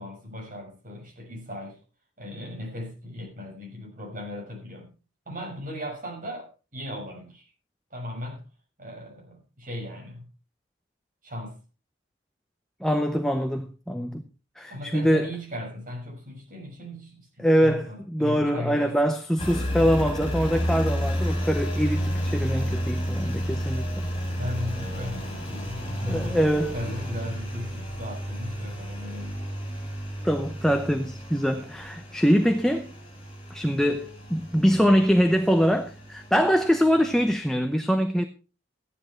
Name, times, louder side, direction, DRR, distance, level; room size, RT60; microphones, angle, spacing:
voice 1, 0.0-1.8 2.2-4.9 5.3-7.5 7.9-8.4 8.8-10.3 11.2-11.6 14.7-19.0 24.3-26.4 26.7-29.4, left 1 dB, 45° right, 6.3 m, -37 dB
voice 2, 12.8-14.2 14.6-15.3 17.4-24.1 26.1-26.7 30.2-32.9 33.5-38.2, equal, ahead, 0.8 m, -23 dB
Engine, 19.4-37.3, equal, 30° left, 6.5 m, -32 dB
14.5 x 10.5 x 4.5 m
head